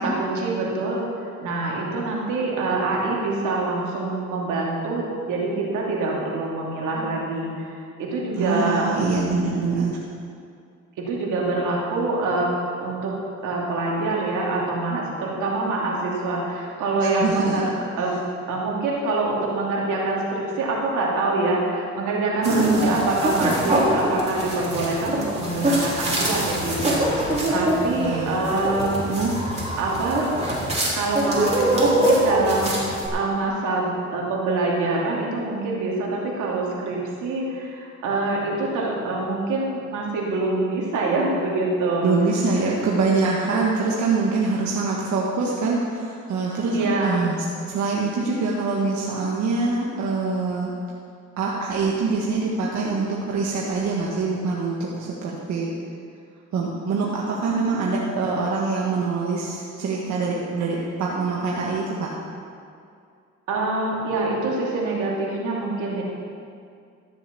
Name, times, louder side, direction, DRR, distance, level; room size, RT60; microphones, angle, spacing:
voice 1, 0.0-8.9 11.0-13.1 13.4-17.7 18.0-18.1 18.5-29.0 29.8-30.3 30.9-42.1 46.7-47.2 63.5-66.0, right 2 dB, 85° right, -3 dB, 2.7 m, -25 dB
voice 2, 8.4-10.0 17.0-17.6 22.4-23.0 27.9-28.4 29.1-29.3 42.0-50.7 51.4-55.7 56.5-62.1, right 4 dB, 70° right, -3 dB, 1.6 m, -24 dB
sound 1, 22.4-33.1, right 1 dB, 20° right, 3.7 m, -24 dB
13.5 x 7.1 x 6.9 m, 2.3 s
cardioid pair, 90°, 30 cm